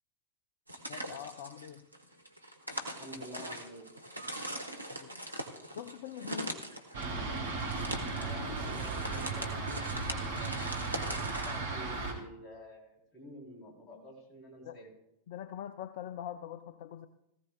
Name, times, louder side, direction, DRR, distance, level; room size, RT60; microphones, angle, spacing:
sound 1, 0.7-11.6, right 1 dB, 85° right, 1.0 m, -41 dB
voice 1, 0.9-1.9 4.9-5.1 5.7-6.6 14.6-14.8 15.3-17.1, left 10 dB, 55° left, 12 dB, 0.5 m, -43 dB
voice 2, 3.0-3.9 8.2-14.9, left 1 dB, 30° left, 0 dB, 3.3 m, -49 dB
Fixed-wing aircraft airplane, 6.9-12.1, right 3 dB, 65° right, 2.8 m, -36 dB
18.0 x 14.5 x 2.2 m, 0.82 s
figure-of-eight pair, 90°, 0 cm